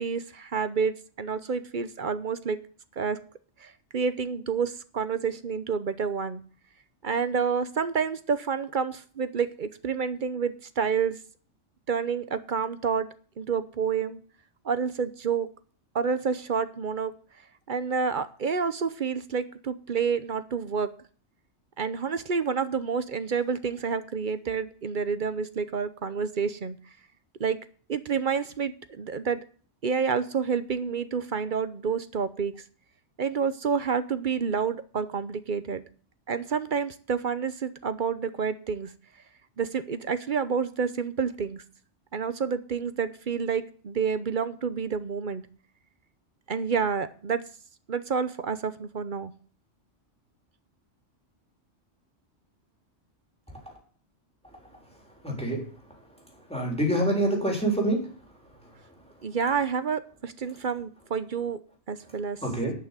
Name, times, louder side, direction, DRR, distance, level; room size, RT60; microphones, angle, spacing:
voice 1, 0.0-2.6 3.0-3.2 3.6-6.4 7.0-11.2 11.9-13.1 13.4-14.2 14.6-15.5 15.9-17.1 17.7-20.9 21.8-26.8 27.4-27.6 27.9-29.4 29.8-32.5 33.2-35.8 36.3-38.9 39.6-41.6 42.1-45.5 46.5-47.4 47.9-49.3 59.2-61.6 61.9-62.4, right 6 dB, 45° right, 12 dB, 0.8 m, -29 dB
voice 2, 55.2-55.6 56.5-58.0 62.4-62.7, right 1 dB, 5° left, -1 dB, 3.5 m, -25 dB
10.5 x 6.2 x 8.1 m, 0.43 s
omnidirectional pair, 1.2 m